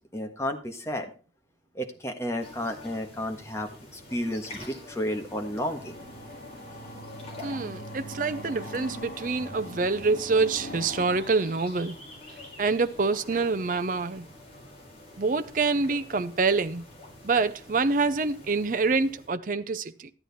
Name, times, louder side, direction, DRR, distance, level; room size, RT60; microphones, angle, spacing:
voice 1, 0.1-1.1 1.7-6.0, left 1 dB, 15° left, 1.4 m, -32 dB
sound 1, 2.4-19.3, left 2 dB, 35° left, 4.1 m, -47 dB
sound 2, 5.3-12.3, equal, 55° left, 3.8 m, -42 dB
voice 2, 7.4-12.0 12.6-14.3 15.2-16.8 17.2-20.1, right 4 dB, 45° right, 0.6 m, -26 dB
12.5 x 9.0 x 4.1 m
head